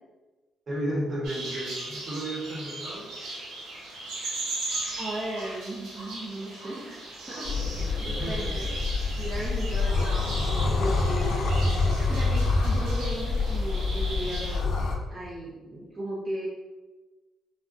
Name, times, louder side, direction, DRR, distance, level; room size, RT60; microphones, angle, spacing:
voice 1, 0.7-3.1 7.8-8.5, right 1 dB, 45° right, -3 dB, 1.0 m, -33 dB
sound 1, 1.2-14.6, right 2 dB, 85° right, 0.7 m, -38 dB
voice 2, 5.0-7.5 7.7-8.6 9.2-11.4 12.1-14.7 15.1-16.5, right 1 dB, 30° right, -6 dB, 0.6 m, -36 dB
sound 2, 7.4-14.9, left 3 dB, 60° left, 0.5 m, -26 dB
3.7 x 2.1 x 2.5 m, 1.2 s
cardioid pair, 90°, 0 cm